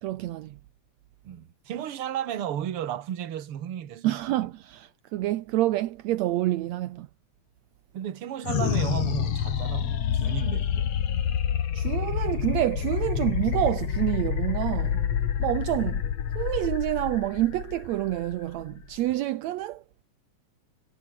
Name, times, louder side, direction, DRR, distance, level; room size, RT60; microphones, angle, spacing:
voice 1, 0.0-0.6 4.0-7.1 11.7-15.1 15.4-16.0 16.3-19.8, right 15 dB, 75° right, 1.6 m, -28 dB
voice 2, 1.2-4.2 7.9-10.9, right 10 dB, 50° right, 1.9 m, -34 dB
sound 1, 8.4-19.1, left 9 dB, 50° left, 2.5 m, -28 dB
omnidirectional pair, 4.0 m